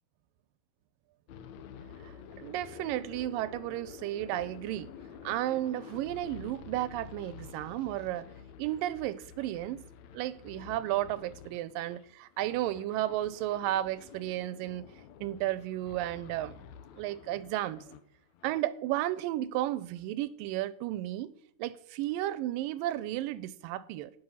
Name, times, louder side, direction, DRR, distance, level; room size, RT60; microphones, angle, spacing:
sound 1, 1.3-18.0 18.3-18.6, left 7 dB, 75° left, 1.8 m, -50 dB
voice 1, 2.0-4.9 5.2-8.3 8.6-9.8 10.1-14.9 15.2-16.6 16.9-17.8 18.4-21.3 21.6-24.1, right 14 dB, 85° right, 2.4 m, -33 dB
18.5 x 6.3 x 5.6 m
omnidirectional pair, 4.0 m